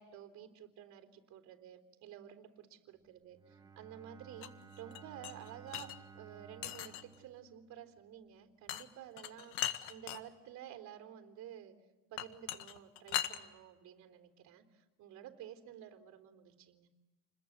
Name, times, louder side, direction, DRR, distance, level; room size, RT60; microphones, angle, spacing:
voice 1, 0.0-11.8 12.1-16.9, right 10 dB, 40° right, 6 dB, 3.7 m, -52 dB
Bowed string instrument, 3.3-8.2, right 6 dB, 10° right, 1.6 m, -56 dB
sound 1, 4.4-6.0 6.6-7.2 8.7-8.8 9.2-10.2 12.2-13.4, left 13 dB, 80° left, 1.7 m, -39 dB
29.5 x 21.5 x 8.0 m, 1.2 s
cardioid pair, 160°, 41 cm